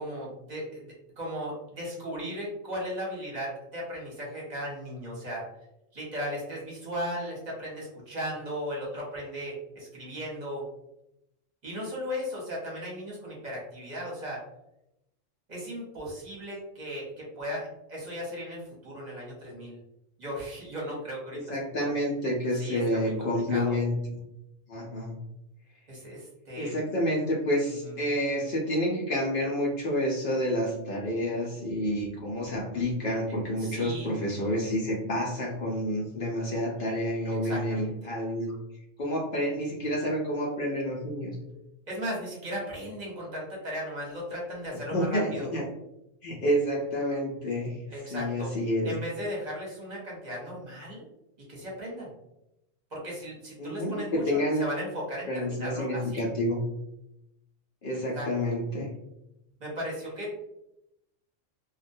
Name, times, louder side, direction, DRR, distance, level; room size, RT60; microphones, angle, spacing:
voice 1, 0.0-5.5 5.9-10.6 11.6-14.4 15.5-19.8 20.2-21.9 22.5-23.8 25.9-26.9 27.8-27.9 33.6-34.1 37.4-38.1 41.9-45.5 47.9-48.5 48.8-51.1 51.5-52.1 52.9-56.2 58.1-58.3 59.6-60.3, equal, 40° right, -4 dB, 0.8 m, -36 dB
voice 2, 21.5-24.2 24.7-25.1 26.6-38.6 39.0-41.4 44.9-45.7 46.2-47.8 48.1-48.9 53.6-54.6 55.3-56.6 57.8-58.9, equal, 60° left, -2 dB, 0.5 m, -29 dB
2.3 x 2.1 x 2.5 m, 0.84 s
omnidirectional pair, 1.3 m